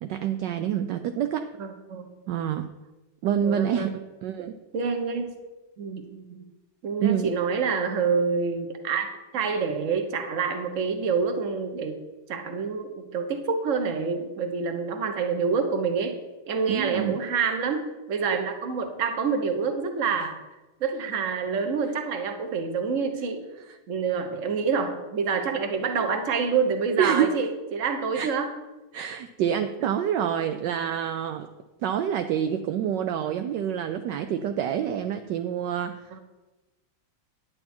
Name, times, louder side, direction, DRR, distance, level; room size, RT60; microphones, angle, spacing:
voice 1, 0.0-1.5 2.3-2.7 3.2-4.6 7.0-7.3 16.7-17.2 27.0-27.3 28.1-28.3 28.9-31.5 31.8-36.2, right 9 dB, 75° right, 8 dB, 1.0 m, -27 dB
voice 2, 1.6-2.1 3.4-3.9 4.7-5.3 5.8-6.5 6.8-9.1 9.3-12.0 12.3-16.2 16.5-17.8 18.1-20.3 20.8-23.5 23.9-28.5 29.8-29.9 36.1-36.2, right 5 dB, 45° right, 5 dB, 1.2 m, -27 dB
9.9 x 9.5 x 4.4 m, 1.1 s
omnidirectional pair, 2.4 m